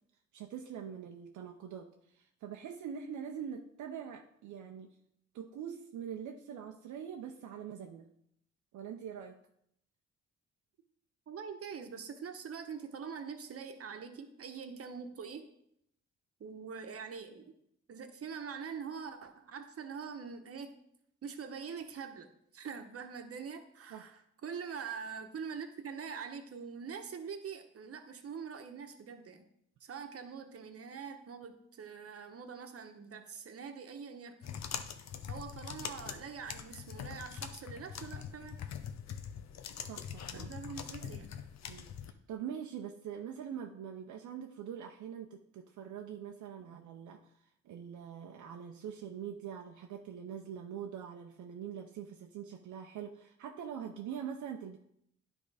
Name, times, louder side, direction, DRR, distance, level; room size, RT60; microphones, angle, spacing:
voice 1, 0.3-4.9 5.3-8.1 8.7-9.4 23.9-24.1 39.9-40.5 41.0-41.1 41.7-41.9 42.3-47.3 47.6-54.8, right 8 dB, 75° right, 3 dB, 0.7 m, -44 dB
voice 2, 11.3-15.5 16.4-17.5 17.9-20.7 21.2-22.3 22.5-29.4 29.8-34.4 35.3-38.6 40.3-41.3 46.6-46.7, right 6 dB, 50° right, 6 dB, 1.1 m, -44 dB
sound 1, 34.4-42.1, left 8 dB, 65° left, 0.7 m, -43 dB
10.0 x 3.6 x 4.9 m, 0.74 s
supercardioid pair, 65°, 30 cm